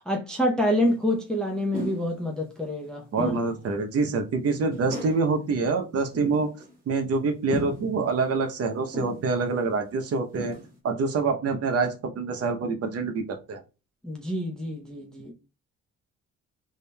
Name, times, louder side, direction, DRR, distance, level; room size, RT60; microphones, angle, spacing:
voice 1, 0.1-3.3 14.0-15.3, left 1 dB, ahead, 0.7 m, -27 dB
sound 1, 0.9-1.0 1.7-2.1 3.2-3.6 4.0-4.1 4.7-5.3 6.1-6.8 7.5-8.0 8.9-9.4 9.9-10.0 10.3-10.8, equal, 25° right, 1.5 m, -35 dB
voice 2, 3.1-6.5 6.9-10.6 10.8-13.6, right 4 dB, 50° right, 0.8 m, -26 dB
4.9 x 2.7 x 2.2 m
cardioid pair, 90°, 30 cm